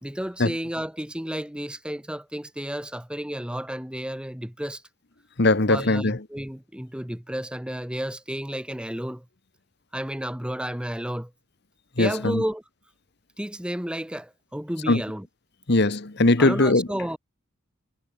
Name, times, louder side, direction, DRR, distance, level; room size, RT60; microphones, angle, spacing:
voice 1, 0.0-4.8 5.7-9.2 9.9-11.3 12.0-12.6 13.4-15.3 16.4-17.2, equal, 5° right, 0.8 m, -32 dB
voice 2, 5.4-6.2 12.0-12.4 14.9-15.0 15.7-16.9, left 2 dB, 50° left, 1.3 m, -20 dB
head